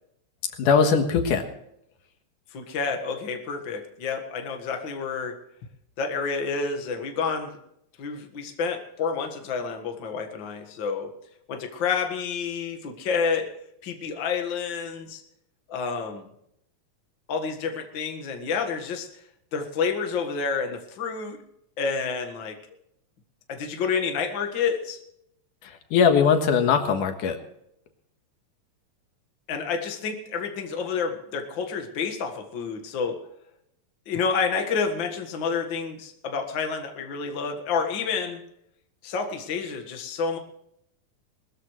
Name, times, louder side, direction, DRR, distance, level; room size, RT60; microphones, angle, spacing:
voice 1, 0.5-1.5 25.6-27.4, left 6 dB, 80° left, 6 dB, 3.0 m, -21 dB
voice 2, 2.5-5.4 6.0-7.6 8.0-11.1 11.5-13.5 13.8-15.2 15.7-16.3 17.3-19.1 19.5-21.4 21.8-22.6 23.5-25.0 29.5-33.2 34.1-38.4 39.0-40.4, left 5 dB, 45° left, 4 dB, 2.0 m, -29 dB
21.0 x 14.0 x 3.2 m, 0.76 s
omnidirectional pair, 3.6 m